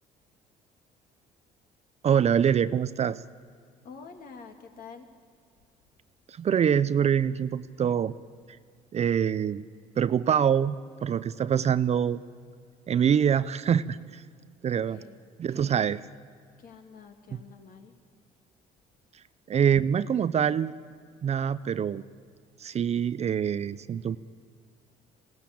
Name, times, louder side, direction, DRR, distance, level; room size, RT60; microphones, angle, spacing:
voice 1, 2.0-3.2 6.3-8.1 8.5-8.6 8.9-9.6 10.0-10.8 11.0-12.2 12.9-14.2 14.6-15.0 15.4-16.0 19.5-20.7 21.2-22.0 22.6-24.2, right 8 dB, 40° right, 15 dB, 0.6 m, -25 dB
voice 2, 3.8-5.1 14.9-15.2 15.5-15.7 16.6-17.9, left 5 dB, 55° left, 4 dB, 2.8 m, -47 dB
21.0 x 17.5 x 8.6 m, 2.1 s
cardioid pair, 110°, 17 cm